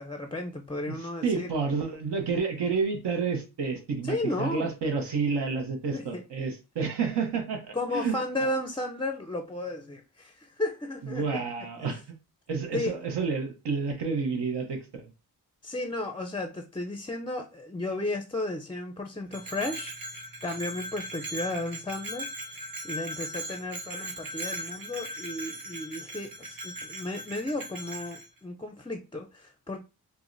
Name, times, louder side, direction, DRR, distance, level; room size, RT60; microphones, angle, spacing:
voice 1, 0.0-1.5 4.0-4.7 5.9-6.2 7.7-11.4 12.7-12.9 15.6-20.0 20.4-22.3 22.8-29.8, left 2 dB, 15° left, 0.4 m, -34 dB
voice 2, 0.9-8.2 11.0-12.0 12.5-15.1, right 5 dB, 80° right, 0.8 m, -30 dB
Bell, 19.3-28.3, right 1 dB, 55° right, 1.3 m, -39 dB
4.7 x 2.1 x 2.5 m
cardioid pair, 50°, 40 cm